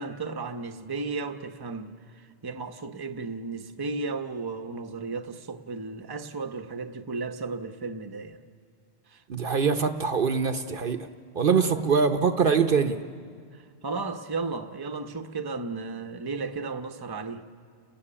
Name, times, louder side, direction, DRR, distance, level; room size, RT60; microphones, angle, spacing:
voice 1, 0.0-8.4 9.1-9.2 11.5-11.9 13.5-17.4, right 4 dB, 25° right, 0.8 m, -34 dB
voice 2, 9.3-11.0 11.3-13.0, right 5 dB, 55° right, 0.9 m, -23 dB
30.0 x 14.5 x 9.9 m
omnidirectional pair, 1.1 m